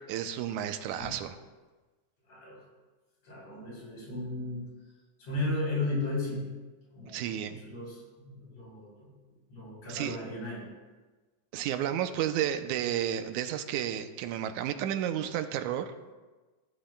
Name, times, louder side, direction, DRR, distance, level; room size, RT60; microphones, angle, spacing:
voice 1, 0.1-1.4 7.1-7.6 9.9-10.2 11.5-15.9, right 10 dB, 80° right, 8 dB, 2.0 m, -32 dB
voice 2, 2.3-2.6 3.2-4.6 5.2-6.5 6.9-9.1 9.5-10.7, left 2 dB, 55° left, -4 dB, 4.7 m, -35 dB
15.0 x 11.5 x 2.2 m, 1.2 s
omnidirectional pair, 3.5 m